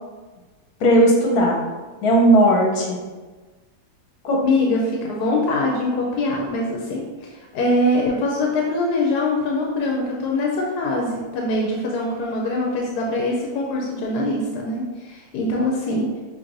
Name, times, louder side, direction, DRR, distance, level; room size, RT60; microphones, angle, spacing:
voice 1, 0.8-1.6 2.0-3.0 4.2-4.5, right 1 dB, 75° left, -1 dB, 1.4 m, -16 dB
voice 2, 4.4-16.1, left 2 dB, 90° left, -2 dB, 1.2 m, -23 dB
5.3 x 2.9 x 2.5 m, 1.3 s
omnidirectional pair, 1.7 m